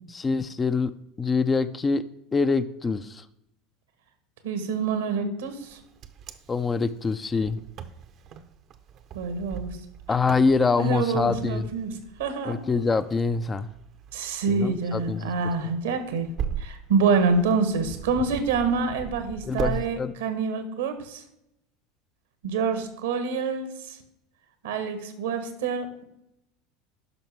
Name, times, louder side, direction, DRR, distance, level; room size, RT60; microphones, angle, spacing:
voice 1, 0.1-0.9 1.2-2.0 2.3-3.2 6.5-7.6 10.1-11.7 12.5-13.7 14.5-15.3 15.6-15.7 19.5-20.1, left 4 dB, 25° left, 12 dB, 0.5 m, -25 dB
voice 2, 4.4-5.8 9.1-9.8 10.8-12.5 14.1-16.3 16.6-21.2 22.4-24.0 24.6-26.1, right 4 dB, 75° right, 8 dB, 1.3 m, -27 dB
Wind, 5.6-19.8, right 8 dB, 50° right, 0.7 m, -39 dB
10.5 x 5.7 x 3.6 m, 0.81 s
hypercardioid pair, 80°, 0 cm